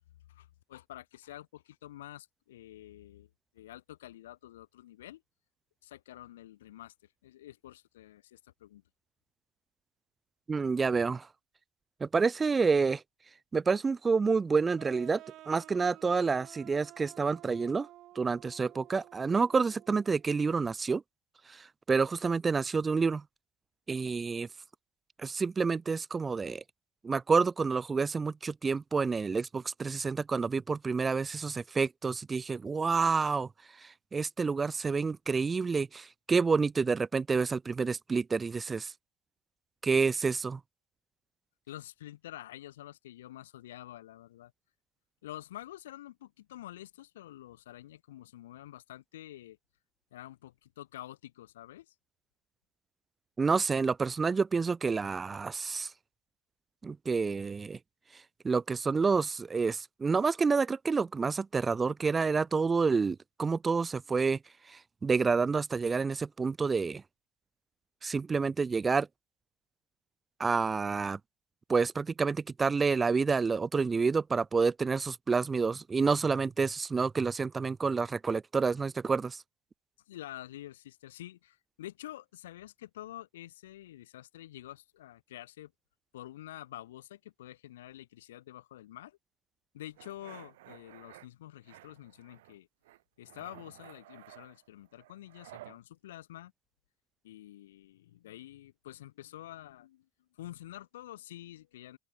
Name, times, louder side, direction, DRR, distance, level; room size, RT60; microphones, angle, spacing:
voice 1, 0.3-3.3 3.5-5.2 5.8-6.9 7.2-8.8 41.7-44.5 45.2-49.6 50.1-51.9 80.1-85.7 86.1-89.2 89.7-92.7 93.2-96.5 97.2-100.1 100.3-102.0, left 14 dB, 85° left, 1.5 m, -48 dB
voice 2, 10.5-11.3 12.0-13.0 13.5-17.9 18.2-21.0 21.5-23.2 23.9-24.5 25.2-26.6 27.0-33.5 33.8-38.9 39.8-40.6 53.4-55.9 56.8-57.8 58.4-64.4 64.7-67.0 68.0-69.1 70.4-71.2 71.7-79.4, right 4 dB, 20° right, 0.3 m, -29 dB
sound 1, 14.8-20.3, right 14 dB, 50° right, 4.8 m, -53 dB
sound 2, 90.0-91.3 91.7-92.6 92.8-95.8, right 17 dB, 80° right, 1.5 m, -53 dB
open air
hypercardioid pair, 95°, 0 cm